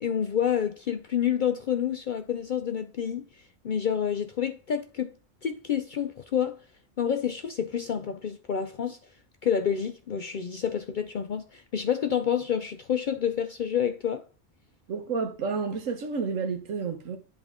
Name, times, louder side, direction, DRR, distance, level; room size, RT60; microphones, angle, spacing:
voice 1, 0.0-5.1 5.4-6.6 7.0-9.0 9.4-14.2, left 8 dB, 60° left, 0.5 m, -28 dB
voice 2, 14.9-17.2, right 5 dB, 85° right, 1.4 m, -30 dB
10.0 x 3.5 x 3.6 m
omnidirectional pair, 1.3 m